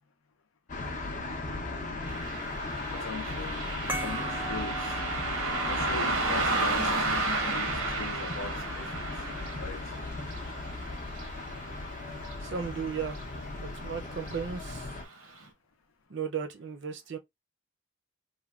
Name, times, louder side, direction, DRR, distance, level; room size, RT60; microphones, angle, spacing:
sound 1, 0.7-15.0, left 2 dB, 35° left, 0.5 m, -37 dB
Car passing by, 2.0-12.8 13.1-13.2 14.2-14.4 14.8-14.9 15.4-15.5, right 2 dB, 85° right, 0.8 m, -33 dB
voice 1, 2.9-5.0 5.6-9.1 9.6-9.8, left 4 dB, 80° left, 0.6 m, -41 dB
sound 2, 3.9-9.0, right 3 dB, 10° right, 0.5 m, -42 dB
voice 2, 12.4-13.2 13.6-14.9 16.1-17.2, right 6 dB, 55° right, 0.5 m, -35 dB
3.2 x 2.2 x 2.3 m
head